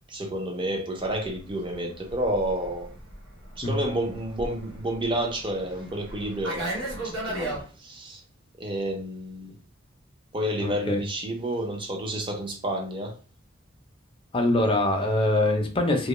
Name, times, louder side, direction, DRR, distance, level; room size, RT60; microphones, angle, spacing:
voice 1, 0.1-2.9 3.6-8.2 8.6-9.5 10.3-13.2, right 1 dB, 25° right, 0.5 m, -30 dB
Fixed-wing aircraft airplane, 1.2-7.6, right 1 dB, 75° right, 1.1 m, -36 dB
voice 2, 10.6-11.0 14.3-16.1, left 1 dB, 25° left, 0.4 m, -23 dB
2.2 x 2.0 x 3.0 m
head